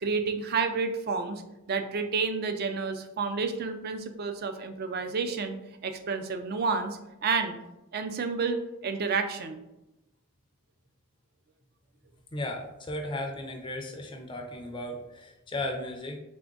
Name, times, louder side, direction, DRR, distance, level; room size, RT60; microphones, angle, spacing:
voice 1, 0.0-1.4 1.7-5.6 5.8-7.6 7.9-9.6, right 4 dB, 45° right, 7 dB, 0.4 m, -30 dB
voice 2, 12.3-16.2, left 1 dB, 20° left, 3 dB, 0.4 m, -35 dB
3.7 x 3.3 x 3.7 m, 0.94 s
head